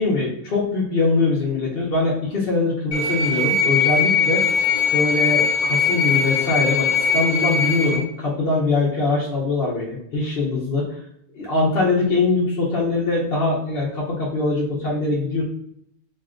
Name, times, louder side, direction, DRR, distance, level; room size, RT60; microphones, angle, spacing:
voice 1, 0.0-4.4 4.9-11.0 11.3-15.4, left 3 dB, 50° left, -6 dB, 0.8 m, -22 dB
sound 1, 2.9-8.0, left 5 dB, 70° left, 1.2 m, -20 dB
5.1 x 2.5 x 2.4 m, 0.73 s
omnidirectional pair, 1.6 m